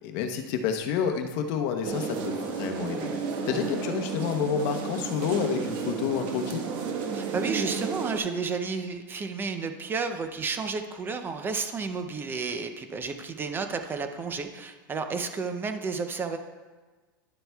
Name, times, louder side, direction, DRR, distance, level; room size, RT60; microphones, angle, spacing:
voice 1, 0.0-3.1 3.4-6.6, left 7 dB, 50° left, 6 dB, 0.9 m, -29 dB
sound 1, 1.8-8.2, right 5 dB, 45° right, 1.2 m, -32 dB
voice 2, 7.1-16.4, right 4 dB, 20° right, 7 dB, 0.5 m, -32 dB
10.5 x 7.7 x 2.3 m, 1.3 s
supercardioid pair, 135°, 12 cm